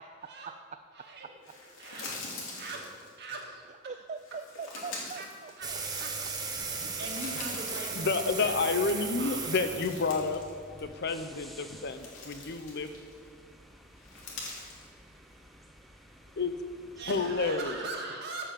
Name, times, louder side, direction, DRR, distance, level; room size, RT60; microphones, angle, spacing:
voice 1, 0.9-1.3 1.8-2.1 2.5-2.9 3.2-3.6 5.2-5.3 5.6-5.7 6.0-6.1 6.5-9.8 17.0-18.5, right 2 dB, 55° right, 0 dB, 1.9 m, -41 dB
sound 1, 1.4-3.4 4.2-6.2 6.6-8.7 9.1-10.5 10.8-11.0 11.6-13.3 14.0-14.9, left 3 dB, 85° left, 2.6 m, -44 dB
voice 2, 3.7-5.8, right 5 dB, 35° right, 9 dB, 0.3 m, -42 dB
sound 2, 5.6-11.0, right 4 dB, 20° right, 1.1 m, -37 dB
voice 3, 8.0-10.4 10.7-12.9 16.4-16.5 17.1-17.8, left 4 dB, 55° left, 10 dB, 0.7 m, -30 dB
sound 3, 8.3-17.9, equal, ahead, 0.7 m, -54 dB
13.5 x 5.8 x 7.0 m, 2.3 s
head